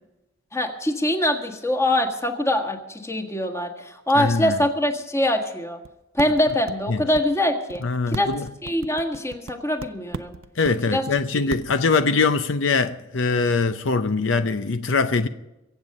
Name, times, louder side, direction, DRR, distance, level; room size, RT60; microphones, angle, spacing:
voice 1, 0.5-5.8 6.1-8.3 8.6-10.4 10.9-11.1, left 1 dB, 15° left, 1.7 m, -23 dB
voice 2, 4.2-4.5 6.9-7.0 7.8-8.5 10.6-15.3, left 4 dB, 70° left, 0.7 m, -22 dB
sound 1, 5.8-5.9 6.2-6.7 7.1-7.2 7.7-7.8 8.1-9.5 9.8-10.7 11.2-11.3 11.5-11.7, right 4 dB, 80° right, 0.6 m, -34 dB
23.0 x 8.1 x 5.4 m
head